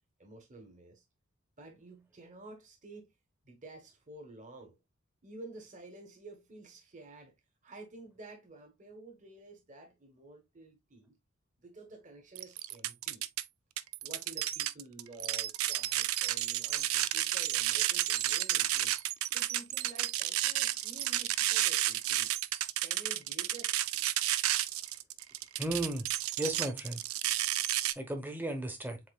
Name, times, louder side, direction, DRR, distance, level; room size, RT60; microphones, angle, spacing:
voice 1, 0.2-1.0 1.6-3.1 3.4-4.8 5.2-7.3 7.6-11.2 11.6-13.2 14.0-19.0 19.3-22.4 22.8-23.7, right 2 dB, 40° right, 1.3 m, -51 dB
sound 1, 12.4-13.4 13.8-27.9, right 14 dB, 80° right, 0.4 m, -31 dB
voice 2, 25.6-26.1 26.4-27.0 28.0-29.0, right 1 dB, 10° right, 1.0 m, -35 dB
7.6 x 2.9 x 2.3 m
head